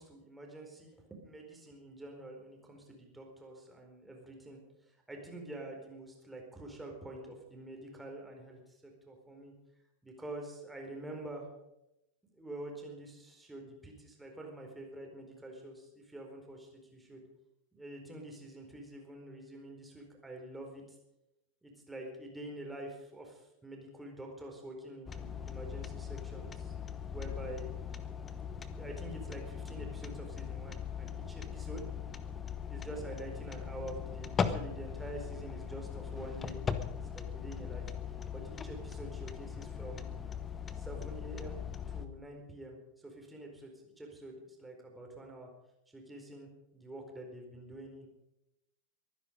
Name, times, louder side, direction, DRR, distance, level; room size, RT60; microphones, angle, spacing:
voice 1, 0.0-9.5 10.0-11.5 12.3-17.2 17.7-20.8 21.6-26.7 27.1-27.7 28.5-31.9 32.7-36.6 37.1-40.2 40.7-41.6 41.9-45.5 45.9-48.1, right 1 dB, 5° right, 1 dB, 4.4 m, -47 dB
sound 1, 25.1-42.1, left 7 dB, 20° left, 1.1 m, -39 dB
23.0 x 10.5 x 5.3 m, 0.90 s
figure-of-eight pair, 90°, 0 cm